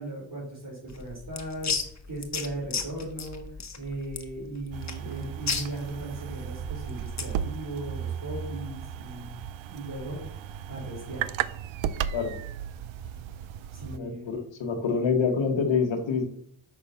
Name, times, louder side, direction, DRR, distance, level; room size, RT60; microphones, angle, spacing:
voice 1, 0.0-1.7 2.1-10.2 10.7-11.4 13.7-14.3, right 1 dB, 55° right, -7 dB, 4.0 m, -37 dB
sound 1, 0.9-7.4, left 5 dB, 35° left, 1.2 m, -34 dB
sound 2, 4.7-14.0, right 9 dB, 90° right, 0.6 m, -35 dB
voice 2, 13.9-16.2, left 5 dB, 80° left, 3 dB, 1.4 m, -26 dB
6.8 x 5.7 x 5.6 m, 0.65 s
cardioid pair, 75°, 45 cm